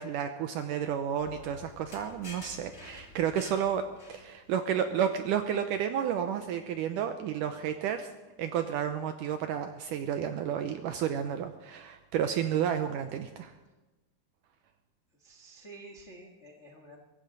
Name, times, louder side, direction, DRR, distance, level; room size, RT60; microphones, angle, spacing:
voice 1, 0.0-3.8 4.1-8.1 8.4-13.5, right 8 dB, 80° right, 7 dB, 1.9 m, -31 dB
sound 1, 1.2-4.6, left 2 dB, 20° left, 2.8 m, -49 dB
voice 2, 15.1-17.0, right 2 dB, 75° left, 1 dB, 0.6 m, -50 dB
23.0 x 16.0 x 3.9 m, 1.1 s
omnidirectional pair, 4.4 m